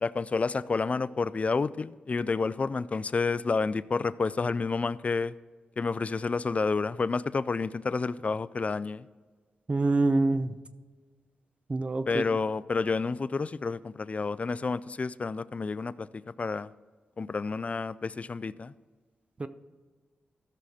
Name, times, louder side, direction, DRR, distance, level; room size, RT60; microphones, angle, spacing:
voice 1, 0.0-5.3 5.8-9.1 12.1-16.7 17.2-18.7, left 4 dB, 45° left, 17 dB, 0.4 m, -30 dB
voice 2, 9.7-10.6 11.7-12.2 19.4-19.5, right 2 dB, 35° right, 12 dB, 0.7 m, -26 dB
14.5 x 6.4 x 4.2 m, 1.4 s
cardioid pair, 60°, 3 cm